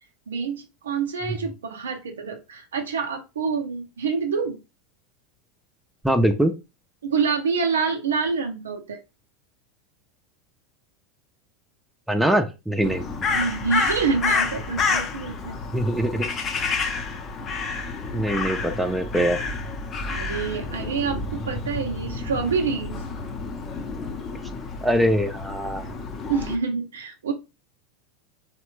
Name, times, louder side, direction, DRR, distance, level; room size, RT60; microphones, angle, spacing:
voice 1, 0.3-4.6 7.0-9.0 13.3-15.6 20.1-23.0 26.3-27.3, right 5 dB, 85° right, 0.5 m, -27 dB
voice 2, 6.0-6.5 12.1-13.1 15.7-16.3 18.1-19.4 24.8-25.9, right 1 dB, 5° right, 0.4 m, -22 dB
Crow, 12.8-26.6, left 4 dB, 35° left, 0.6 m, -29 dB
3.2 x 2.2 x 3.0 m
hypercardioid pair, 90°, 0 cm